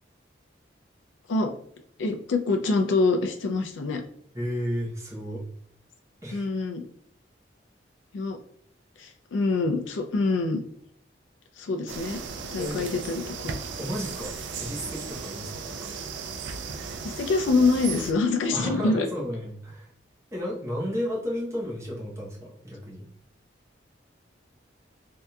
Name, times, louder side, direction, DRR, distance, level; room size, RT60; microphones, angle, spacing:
voice 1, 2.0-4.0 6.3-6.8 8.1-8.4 9.0-10.6 11.6-12.2 12.5-13.6 17.0-19.1, left 3 dB, 85° left, 5 dB, 0.4 m, -25 dB
voice 2, 4.3-5.4 6.2-6.5 12.6-12.8 13.8-15.9 18.5-19.9 20.3-23.0, equal, 15° right, -4 dB, 0.8 m, -33 dB
sound 1, 11.9-18.1, right 5 dB, 75° right, 0.4 m, -36 dB
3.4 x 2.7 x 2.2 m, 0.69 s
head